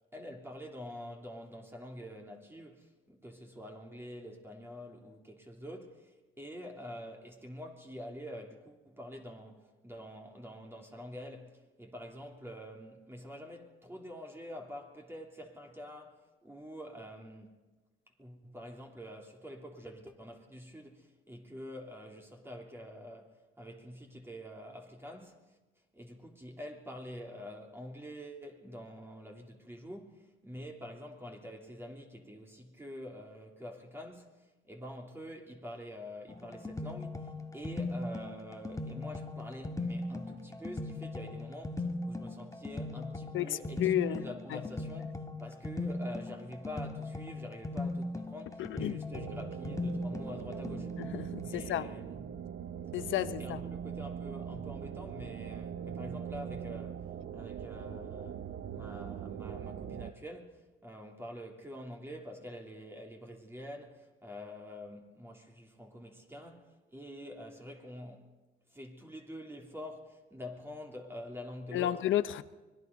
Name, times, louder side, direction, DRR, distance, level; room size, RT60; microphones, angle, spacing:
voice 1, 0.1-17.6 18.2-25.6 25.9-51.0 51.4-52.4 53.1-68.3 68.7-72.0, equal, 10° right, 3.3 m, -46 dB
sound 1, 36.3-51.2, left 2 dB, 15° left, 2.0 m, -39 dB
voice 2, 43.3-44.2 44.5-44.6 48.6-49.0 51.0-51.9 52.9-53.6 71.7-72.4, left 12 dB, 80° left, 1.0 m, -32 dB
sound 2, 49.1-60.1, right 8 dB, 65° right, 1.1 m, -41 dB
25.0 x 20.5 x 5.4 m
cardioid pair, 90°, 20 cm